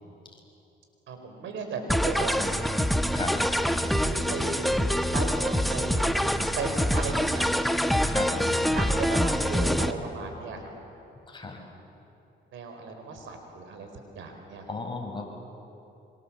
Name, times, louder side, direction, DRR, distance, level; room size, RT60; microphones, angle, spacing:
voice 1, 1.1-2.6 4.0-4.8 5.1-7.5 8.7-10.6 12.5-13.9 14.1-14.6, right 4 dB, 75° right, 5 dB, 4.5 m, -36 dB
sound 1, 1.9-9.9, equal, ahead, 1.1 m, -25 dB
voice 2, 3.1-3.4 3.8-4.3 8.0-9.1 11.3-11.6 14.7-15.3, left 3 dB, 25° left, 1 dB, 5.1 m, -36 dB
26.5 x 25.5 x 7.3 m, 2.9 s
cardioid pair, 90°, 20 cm